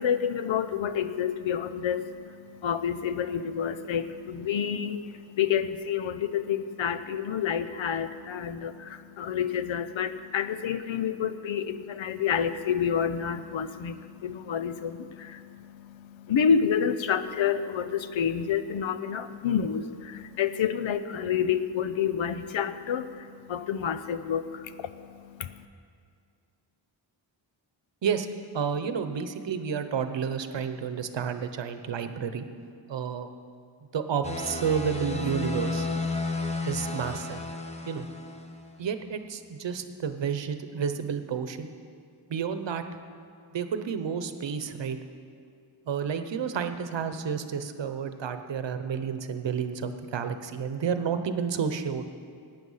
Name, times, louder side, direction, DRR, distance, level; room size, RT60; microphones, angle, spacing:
voice 1, 0.0-25.6, left 8 dB, 85° left, 12 dB, 0.7 m, -29 dB
voice 2, 28.5-32.5 32.9-33.3 33.9-35.9 36.7-37.4 37.9-38.0 38.8-41.7 42.3-42.8 43.5-45.0 45.9-52.0, right 7 dB, 70° right, 9 dB, 0.9 m, -30 dB
sound 1, 34.2-38.7, left 3 dB, 15° left, 1.0 m, -32 dB
17.5 x 9.0 x 5.6 m, 2.3 s
wide cardioid pair, 145°, 45 cm